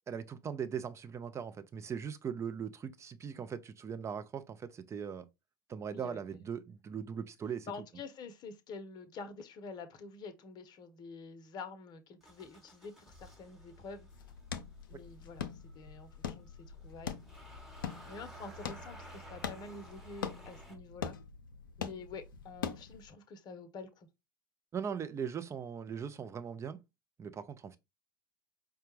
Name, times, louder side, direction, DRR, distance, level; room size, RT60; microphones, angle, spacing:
voice 1, 0.1-5.2 5.7-7.7 24.7-26.8 27.2-27.8, right 7 dB, 25° right, 0.5 m, -39 dB
voice 2, 7.7-14.1 14.9-15.5 15.7-17.2 18.1-21.1 21.8-24.1, left 4 dB, 40° left, 0.7 m, -47 dB
Motor vehicle (road) / Engine starting, 12.2-20.8, right 1 dB, 5° right, 1.1 m, -54 dB
sound 1, 14.1-23.1, left 7 dB, 80° left, 0.4 m, -43 dB
4.9 x 2.2 x 3.1 m
hypercardioid pair, 80°, 11 cm